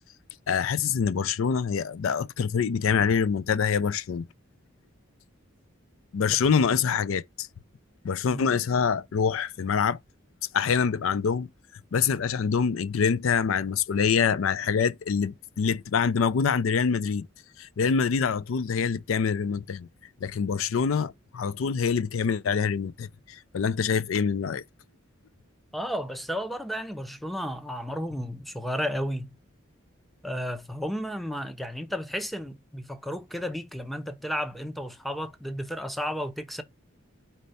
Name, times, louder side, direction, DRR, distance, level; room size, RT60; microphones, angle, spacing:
voice 1, 0.5-4.2 6.1-7.5 8.0-10.0 10.5-11.5 11.9-17.3 17.6-19.9 20.2-24.6, left 6 dB, 75° left, 0.4 m, -25 dB
voice 2, 25.7-29.3 30.2-36.6, equal, ahead, 0.5 m, -33 dB
4.5 x 4.1 x 5.3 m
head